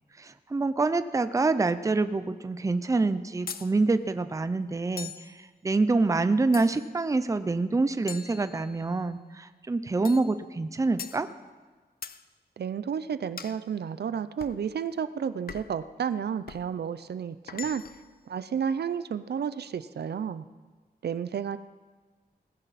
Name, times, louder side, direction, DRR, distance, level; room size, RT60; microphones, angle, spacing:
voice 1, 0.2-5.1 5.6-11.3, right 3 dB, 20° right, 11 dB, 0.5 m, -26 dB
sound 1, 3.5-3.7 5.0-5.3 6.5-7.0 8.1-9.0 10.0-10.3 11.0-11.2 12.0-12.2 13.4-13.6 14.4-14.6 15.5-15.8 16.5-16.7 17.5-18.1, left 7 dB, 65° left, 0.6 m, -41 dB
voice 2, 12.6-17.8 18.3-20.5 21.0-21.6, right 7 dB, 75° right, 14 dB, 0.5 m, -31 dB
18.5 x 15.5 x 4.1 m, 1.4 s
wide cardioid pair, 170°, 17 cm